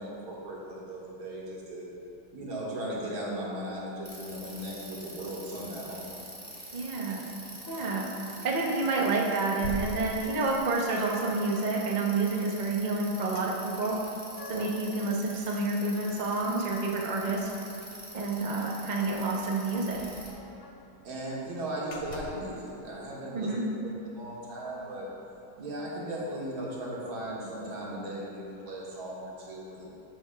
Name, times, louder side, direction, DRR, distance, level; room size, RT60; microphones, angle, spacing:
voice 1, 0.0-1.9 2.3-6.0 14.5-14.6 21.0-23.5 24.2-25.1 25.6-29.9, right 1 dB, 75° right, -6 dB, 2.4 m, -37 dB
Bicycle, 4.0-20.3, right 1 dB, 10° right, 1.1 m, -45 dB
voice 2, 6.7-7.3 7.7-8.1 8.4-14.0 14.5-17.5 18.1-20.0 23.3-23.6, right 3 dB, 60° right, -2 dB, 0.4 m, -29 dB
sound 1, 7.6-8.3 8.9-9.1 9.6-10.7 13.3-13.5 13.8-14.9 15.3-17.1 17.4-17.5 17.9-18.1 19.2-19.3 19.5-19.6 20.0-20.9 21.3-21.5 21.9-22.5, left 3 dB, 70° left, 1.5 m, -43 dB
14.0 x 7.0 x 2.3 m, 2.9 s
omnidirectional pair, 2.3 m